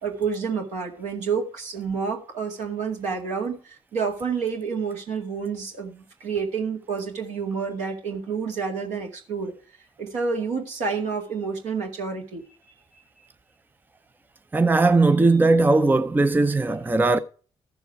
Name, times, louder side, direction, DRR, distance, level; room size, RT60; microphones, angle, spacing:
voice 1, 0.0-9.5 10.0-12.5, right 5 dB, 60° right, 2.2 m, -29 dB
voice 2, 14.5-17.2, right 3 dB, 15° right, 0.6 m, -19 dB
14.5 x 7.0 x 4.7 m
figure-of-eight pair, 40°, 14 cm